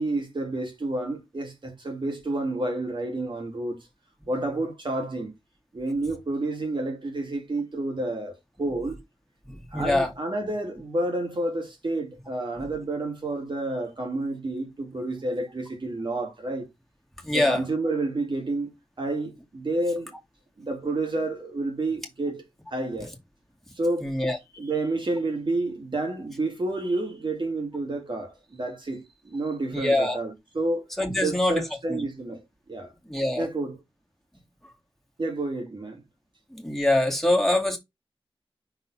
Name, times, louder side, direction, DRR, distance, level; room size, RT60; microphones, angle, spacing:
voice 1, 0.0-3.8 4.3-5.3 5.7-9.0 9.7-16.7 17.3-20.1 20.6-22.4 22.7-23.1 23.8-24.1 24.5-30.8 31.2-32.4 32.7-32.9 33.4-33.7 35.2-36.0, right 2 dB, 55° right, 2.9 m, -29 dB
voice 2, 9.5-10.1 17.2-17.6 24.0-24.4 29.7-30.2 31.0-31.6 31.9-32.0 33.1-33.5 36.5-37.8, left 1 dB, 5° left, 2.2 m, -24 dB
5.9 x 4.1 x 4.2 m
wide cardioid pair, 85°, 10 cm